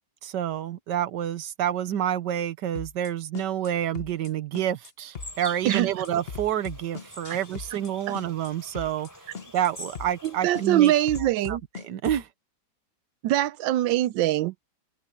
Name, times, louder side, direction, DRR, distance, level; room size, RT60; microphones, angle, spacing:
voice 1, 0.2-9.1 9.5-10.9 11.5-11.6 11.8-12.3, right 10 dB, 70° right, 1.5 m, -28 dB
sound 1, 2.7-3.1 3.3-3.7 3.9-4.3 4.5-4.9 5.1-5.5 5.7-7.9 8.1-8.5 8.7-9.1 9.3-9.7 9.9-10.3 10.5-12.2, left 5 dB, 40° left, 1.1 m, -39 dB
sound 2, 5.2-11.2, right 1 dB, 10° left, 3.6 m, -44 dB
voice 2, 10.4-11.6 13.2-14.5, right 13 dB, 85° right, 1.3 m, -23 dB
open air
omnidirectional pair, 2.0 m